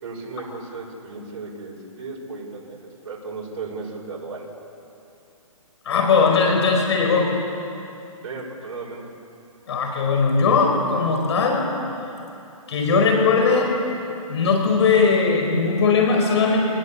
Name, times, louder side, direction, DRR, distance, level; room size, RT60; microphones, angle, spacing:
voice 1, 0.0-4.5 8.2-9.1, right 4 dB, 45° right, -2 dB, 5.8 m, -35 dB
voice 2, 5.8-7.3 9.7-11.6 12.7-13.7 14.3-16.6, left 4 dB, 50° left, 2 dB, 5.0 m, -19 dB
26.5 x 20.0 x 8.6 m, 2.8 s
hypercardioid pair, 155°, 19 cm